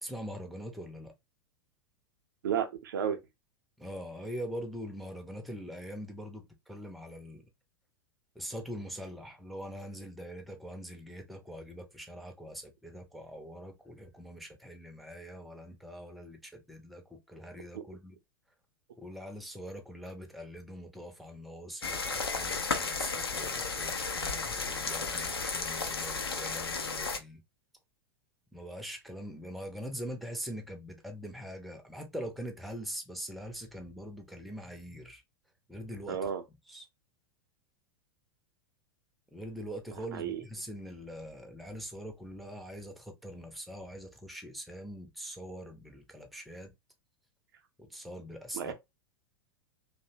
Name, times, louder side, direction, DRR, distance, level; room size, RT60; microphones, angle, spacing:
voice 1, 0.0-1.1 3.8-7.5 8.4-18.2 19.0-27.4 28.5-35.2 35.7-36.2 36.7-36.9 39.3-46.7 47.8-48.7, equal, ahead, 0.5 m, -43 dB
voice 2, 2.4-3.2 17.7-17.9 36.1-36.4 40.1-40.4 48.5-48.7, right 8 dB, 65° right, 0.5 m, -32 dB
sound 1, 21.8-27.2, left 4 dB, 80° left, 0.5 m, -33 dB
2.6 x 2.1 x 2.6 m
figure-of-eight pair, 90°, 13 cm